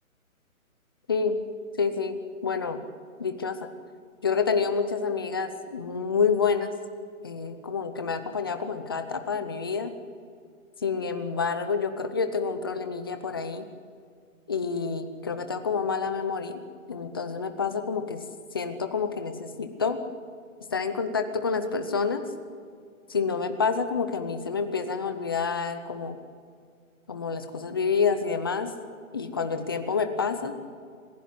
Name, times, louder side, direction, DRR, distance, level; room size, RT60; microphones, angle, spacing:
voice 1, 1.8-2.8 3.2-3.7 4.2-6.7 7.2-9.9 10.8-13.7 14.5-16.6 16.9-18.2 18.5-20.0 20.7-22.2 23.1-26.2 27.1-28.7 29.1-30.5, left 5 dB, 15° left, 8 dB, 0.8 m, -28 dB
26.5 x 16.0 x 9.4 m, 2.1 s
hypercardioid pair, 165°, 42 cm